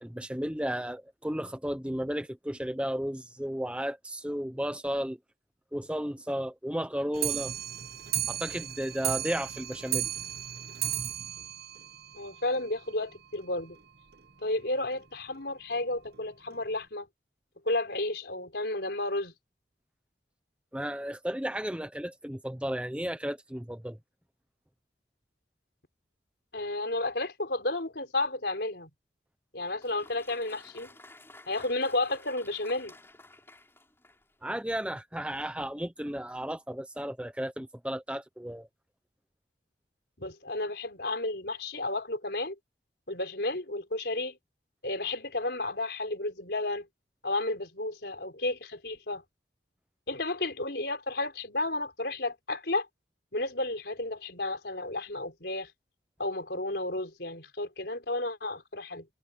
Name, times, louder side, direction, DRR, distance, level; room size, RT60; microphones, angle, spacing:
voice 1, 0.0-5.2 5.7-7.5 8.3-10.1 20.7-24.0 34.4-38.7, equal, 5° right, 0.8 m, -34 dB
Clock, 7.1-12.6 13.0-13.1 13.3-13.4 13.8-13.9 14.1-14.2 14.9-15.0 15.7-15.8 16.5-16.6, right 11 dB, 55° right, 1.5 m, -34 dB
voice 2, 12.1-13.8 14.4-17.1 17.6-19.3 26.5-28.9 29.5-30.9 31.5-32.9 40.2-42.5 43.1-44.4 44.8-46.9 47.2-49.2 50.1-52.9 53.3-55.7 56.2-59.1, left 2 dB, 65° left, 4.4 m, -32 dB
Applause, 29.6-34.4, left 2 dB, 15° left, 5.7 m, -53 dB
head